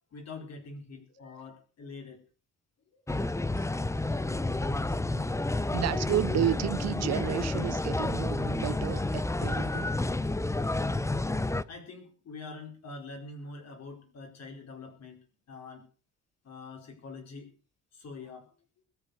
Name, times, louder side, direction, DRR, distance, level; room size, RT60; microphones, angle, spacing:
voice 1, 0.1-2.2 3.1-3.5 5.0-5.1 5.5-5.8 11.2-15.2 15.5-15.8 16.4-17.5 17.9-18.5, left 3 dB, 60° left, 4.7 m, -45 dB
sound 1, 3.1-11.6, left 2 dB, 10° left, 0.8 m, -30 dB
voice 2, 5.7-9.9, right 12 dB, 60° right, 0.6 m, -33 dB
21.0 x 7.9 x 6.4 m
cardioid pair, 90°, 30 cm